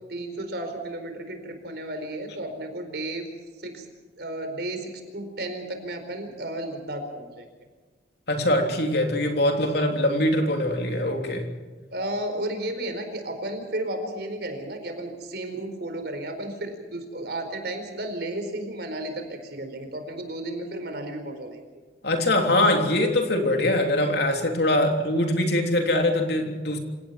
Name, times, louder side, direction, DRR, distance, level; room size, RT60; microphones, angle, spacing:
voice 1, 0.1-3.3 3.6-3.9 4.2-7.5 11.9-21.6 24.8-24.9, right 1 dB, 60° right, 6 dB, 4.6 m, -33 dB
voice 2, 8.3-11.5 22.0-26.8, left 1 dB, 60° left, 3 dB, 3.5 m, -23 dB
27.5 x 18.0 x 6.0 m, 1.4 s
head